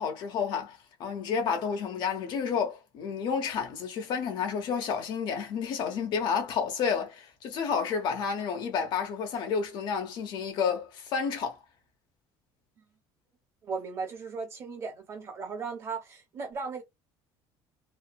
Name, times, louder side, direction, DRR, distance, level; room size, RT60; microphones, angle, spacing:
voice 1, 0.0-11.6, left 6 dB, 55° left, 0.9 m, -30 dB
voice 2, 13.6-16.8, right 5 dB, 30° right, 1.1 m, -36 dB
3.2 x 2.1 x 2.3 m
cardioid pair, 160°, 9 cm